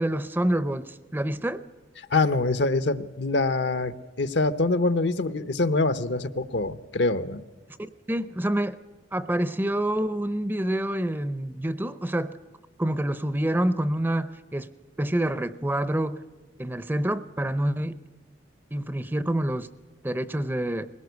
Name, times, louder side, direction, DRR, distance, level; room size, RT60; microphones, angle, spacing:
voice 1, 0.0-1.6 7.8-8.8 9.1-12.4 12.8-14.7 15.0-16.2 16.6-18.0 18.7-19.7 20.0-20.9, right 1 dB, 10° right, 14 dB, 0.6 m, -27 dB
voice 2, 2.0-7.4, left 3 dB, 70° left, 13 dB, 0.9 m, -25 dB
21.0 x 18.0 x 8.2 m, 1.3 s
head